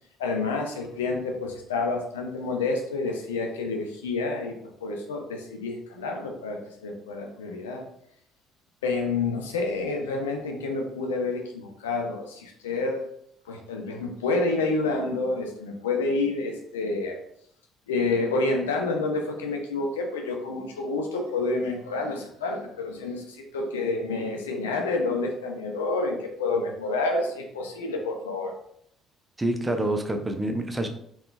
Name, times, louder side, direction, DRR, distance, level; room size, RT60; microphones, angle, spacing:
voice 1, 0.2-4.5 4.8-7.9 8.8-13.0 13.5-17.2 17.9-28.5, left 3 dB, 80° left, 2 dB, 0.4 m, -29 dB
voice 2, 29.4-30.9, right 1 dB, 15° right, 5 dB, 0.5 m, -27 dB
3.7 x 2.3 x 2.2 m, 0.70 s
figure-of-eight pair, 50°, 0 cm